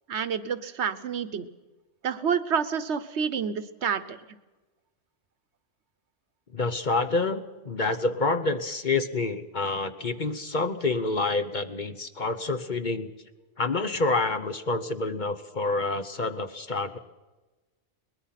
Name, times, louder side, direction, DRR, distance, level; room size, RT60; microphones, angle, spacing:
voice 1, 0.1-1.5 2.0-4.2, right 7 dB, 70° right, 14 dB, 1.2 m, -28 dB
voice 2, 6.5-13.1 13.6-17.0, left 3 dB, 40° left, 9 dB, 1.0 m, -28 dB
22.5 x 20.0 x 5.8 m, 1.2 s
omnidirectional pair, 1.2 m